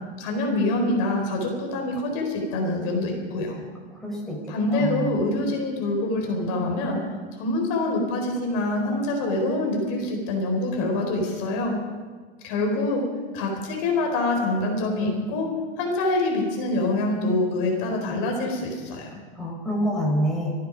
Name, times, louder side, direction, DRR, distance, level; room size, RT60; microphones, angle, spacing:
voice 1, 0.2-3.6 4.5-7.0 7.4-11.8 12.4-13.0 13.3-15.5 15.8-19.2, left 2 dB, 60° left, 1 dB, 4.4 m, -25 dB
voice 2, 3.7-4.4 4.7-5.1 19.4-20.5, equal, ahead, -3 dB, 5.3 m, -27 dB
26.0 x 9.5 x 5.2 m, 1.5 s
supercardioid pair, 125°, 29 cm